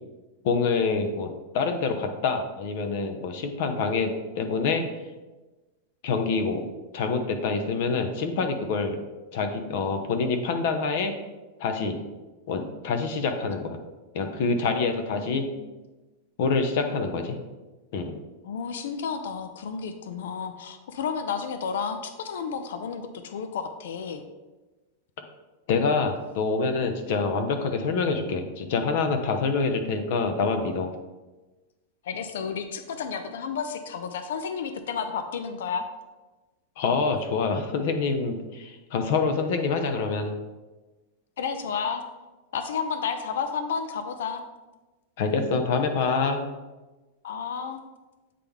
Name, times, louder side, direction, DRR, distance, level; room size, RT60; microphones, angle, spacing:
voice 1, 0.4-1.3 1.5-4.8 6.0-6.6 6.9-9.0 9.3-11.1 11.6-12.0 12.5-13.8 14.1-15.5 16.4-17.4 17.9-18.2 25.7-30.9 36.8-40.3 45.2-46.4, left 4 dB, 50° left, 6 dB, 0.7 m, -26 dB
voice 2, 15.1-15.7 18.4-24.3 32.0-35.9 41.4-42.0 42.5-44.4 47.2-47.8, left 6 dB, 80° left, 8 dB, 0.5 m, -32 dB
8.4 x 3.8 x 3.5 m, 1.2 s
supercardioid pair, 165°, 0 cm